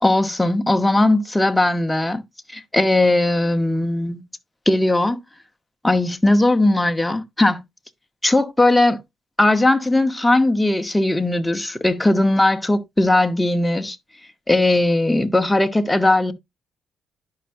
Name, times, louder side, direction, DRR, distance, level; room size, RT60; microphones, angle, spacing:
voice 1, 0.0-2.2 2.5-4.2 4.7-5.2 5.8-7.6 8.2-9.0 9.4-14.0 14.5-16.3, left 2 dB, 10° left, 0.9 m, -18 dB
10.5 x 5.6 x 2.5 m
cardioid pair, 90°, 0 cm